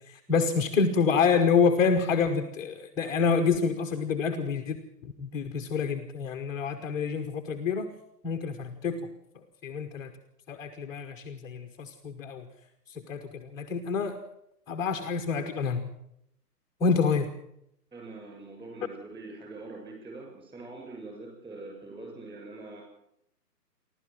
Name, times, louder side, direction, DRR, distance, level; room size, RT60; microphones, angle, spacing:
voice 1, 0.1-4.8 5.0-7.9 8.2-9.1 9.6-10.1 10.5-12.5 12.9-14.2 14.7-15.9 16.8-17.3, left 5 dB, 5° left, 4 dB, 0.8 m, -27 dB
voice 2, 17.9-22.8, right 2 dB, 10° right, 1 dB, 6.7 m, -43 dB
28.0 x 12.5 x 7.6 m, 0.78 s
figure-of-eight pair, 140°, 48 cm